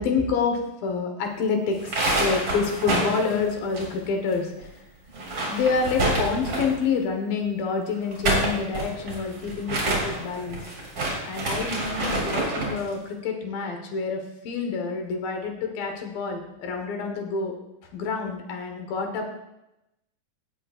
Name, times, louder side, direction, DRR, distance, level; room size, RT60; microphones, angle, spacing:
voice 1, 0.0-4.7 5.5-10.7 11.2-17.5 17.9-19.2, left 5 dB, 80° left, 3 dB, 3.0 m, -28 dB
sound 1, 1.7-4.4 4.6-4.7 5.1-6.9 8.0-12.8, right 2 dB, 35° right, 3.5 m, -27 dB
17.5 x 8.7 x 2.5 m, 0.90 s
omnidirectional pair, 4.0 m